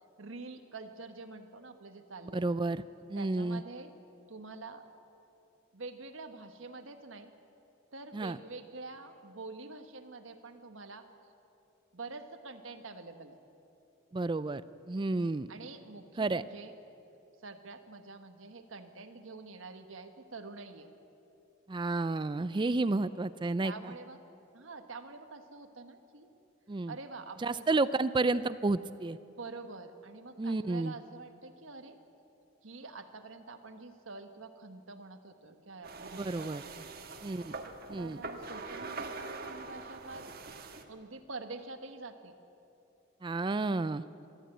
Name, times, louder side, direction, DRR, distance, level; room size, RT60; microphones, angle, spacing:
voice 1, 0.2-2.4 3.1-3.9 4.3-4.8 5.7-7.3 7.9-11.0 11.9-13.4 15.5-16.7 17.4-20.9 23.6-24.2 24.5-26.3 26.9-27.8 29.2-32.0 32.6-37.1 38.0-40.3 40.9-42.4, right 3 dB, 75° right, 7 dB, 1.4 m, -46 dB
voice 2, 2.3-2.8 3.1-3.6 8.1-8.4 14.1-14.6 14.9-15.5 16.2-16.4 21.7-23.9 26.7-26.9 27.4-29.2 30.4-30.9 36.1-36.6 37.2-37.6 37.9-38.2 43.2-44.0, right 3 dB, 25° right, 15 dB, 0.4 m, -31 dB
sound 1, 35.8-40.8, right 3 dB, 50° right, 1.4 m, -43 dB
22.5 x 13.0 x 9.0 m, 2.8 s
head